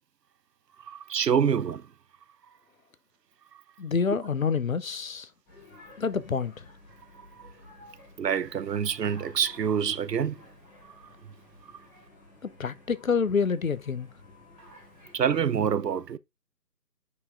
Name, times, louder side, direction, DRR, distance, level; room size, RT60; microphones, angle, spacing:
voice 1, 0.9-1.9 7.4-7.5 8.2-10.4 15.1-16.2, right 7 dB, 75° right, 0.7 m, -26 dB
voice 2, 3.8-5.3 6.0-6.6 12.4-14.1, left 5 dB, 55° left, 0.7 m, -27 dB
sound 1, 5.5-15.4, left 2 dB, 10° left, 1.6 m, -53 dB
9.5 x 5.0 x 2.4 m
figure-of-eight pair, 155°, 50 cm